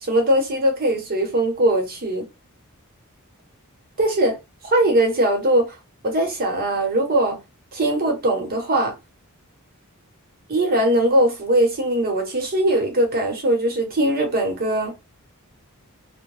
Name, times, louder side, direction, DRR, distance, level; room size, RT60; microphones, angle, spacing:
voice 1, 0.0-2.2 4.0-4.4 4.6-5.7 6.0-7.4 7.7-8.9 10.5-14.9, right 1 dB, 45° right, 0.9 m, -20 dB
2.6 x 2.1 x 3.1 m
head